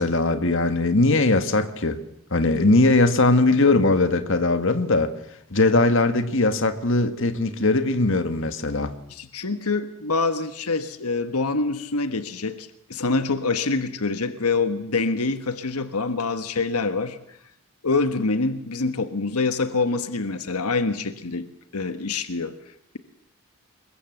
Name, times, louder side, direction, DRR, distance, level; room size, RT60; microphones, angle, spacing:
voice 1, 0.0-2.0 2.3-5.1 5.5-8.9, left 2 dB, 60° left, 1.7 m, -20 dB
voice 2, 9.1-17.2 17.8-21.5 21.7-22.5, left 3 dB, 85° left, 1.4 m, -25 dB
25.5 x 22.0 x 7.9 m
head